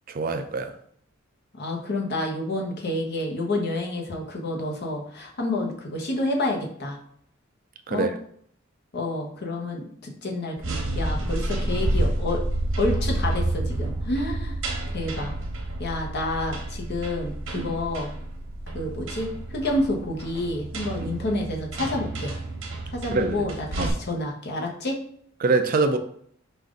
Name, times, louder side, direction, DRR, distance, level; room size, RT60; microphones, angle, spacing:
voice 1, 0.1-0.7 7.9-8.1 17.5-17.7 21.0-21.1 23.1-23.5 23.8-24.0 25.4-26.0, right 3 dB, 45° right, 0.4 m, -24 dB
voice 2, 1.5-7.0 7.9-8.1 8.9-12.4 12.8-14.6 14.9-15.3 15.8-18.1 18.7-22.3 22.9-25.0, left 2 dB, 55° left, 1.0 m, -29 dB
sound 1, 10.6-23.9, right 1 dB, 90° right, 1.0 m, -30 dB
5.3 x 2.5 x 3.7 m
head